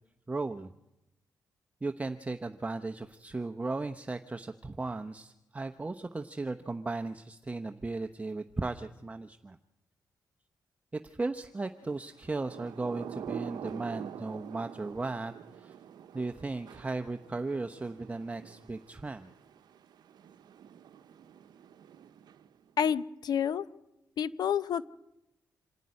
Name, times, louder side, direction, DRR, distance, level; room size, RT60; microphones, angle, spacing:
voice 1, 0.3-0.7 1.8-9.6 10.9-15.7 16.1-19.3, right 3 dB, 20° right, 6 dB, 0.9 m, -36 dB
Thunder / Rain, 12.2-22.7, right 9 dB, 80° right, 0.8 m, -46 dB
voice 2, 22.8-23.6 24.2-24.9, left 8 dB, 70° left, 16 dB, 0.7 m, -29 dB
26.5 x 10.5 x 9.6 m, 0.92 s
cardioid pair, 85°, 7 cm